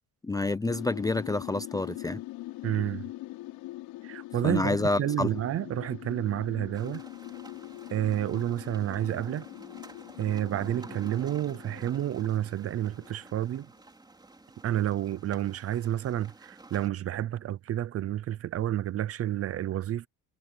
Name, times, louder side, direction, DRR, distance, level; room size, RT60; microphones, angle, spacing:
voice 1, 0.2-2.2 4.4-5.3, left 2 dB, 10° left, 0.5 m, -28 dB
sound 1, 0.7-13.4, left 17 dB, 85° left, 5.0 m, -43 dB
voice 2, 2.6-3.0 4.0-7.0 7.9-9.4 10.2-13.7 14.6-20.1, right 12 dB, 40° right, 0.7 m, -30 dB
sound 2, 6.7-16.9, right 2 dB, 10° right, 4.0 m, -50 dB
cardioid pair, 150°, 35 cm